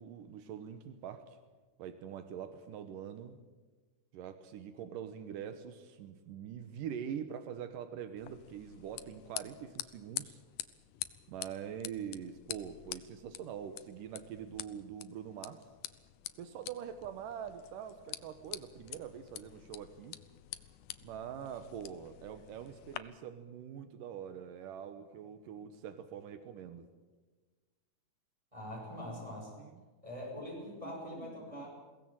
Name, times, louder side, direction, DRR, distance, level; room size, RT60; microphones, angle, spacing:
voice 1, 0.0-1.4 1.8-3.4 4.1-10.4 11.3-15.6 16.4-20.2 21.0-26.9 29.6-29.8 31.1-31.7, right 8 dB, 80° right, 10 dB, 2.7 m, -44 dB
sound 1, 8.2-23.0, left 14 dB, 85° left, 2.5 m, -47 dB
voice 2, 28.5-29.5 30.0-31.7, left 1 dB, 10° right, -2 dB, 6.3 m, -43 dB
22.5 x 17.5 x 8.8 m, 1.3 s
omnidirectional pair, 3.7 m